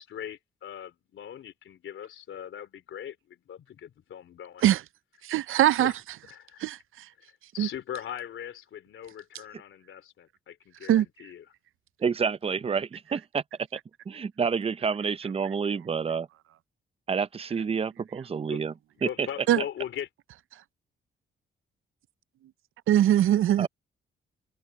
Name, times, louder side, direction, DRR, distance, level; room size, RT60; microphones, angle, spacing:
voice 1, 0.0-4.7 5.5-6.0 6.3-6.7 7.2-7.3 7.5-11.4 18.5-18.6 19.0-20.1, left 10 dB, 80° left, 3.6 m, -40 dB
voice 2, 5.2-5.9 6.6-7.1 7.6-7.7 10.9-11.1 19.5-19.6 22.9-23.7, right 12 dB, 85° right, 0.5 m, -22 dB
voice 3, 12.0-13.4 14.1-16.3 17.1-18.7 19.0-19.3 23.6-23.7, right 6 dB, 30° right, 0.5 m, -28 dB
wide cardioid pair, 145°, 21 cm